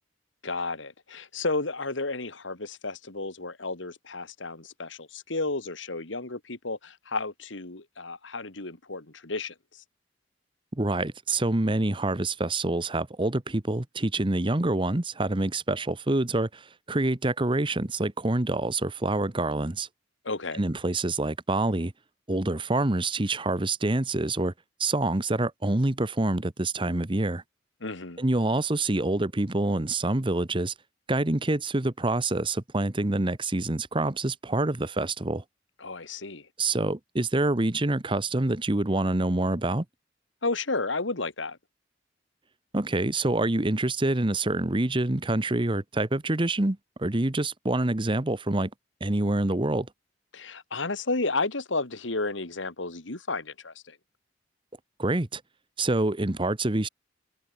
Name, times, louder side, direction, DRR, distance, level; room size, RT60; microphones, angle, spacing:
voice 1, 0.4-9.8 20.2-20.6 27.8-28.2 35.8-36.5 40.4-41.6 50.3-54.0, left 3 dB, 75° left, 2.3 m, -32 dB
voice 2, 10.7-19.9 20.6-21.9 22.3-24.5 24.8-27.4 28.2-30.7 31.1-35.4 36.6-39.8 42.7-48.7 49.0-49.9 55.0-55.4 55.8-56.9, right 2 dB, 25° right, 1.1 m, -26 dB
head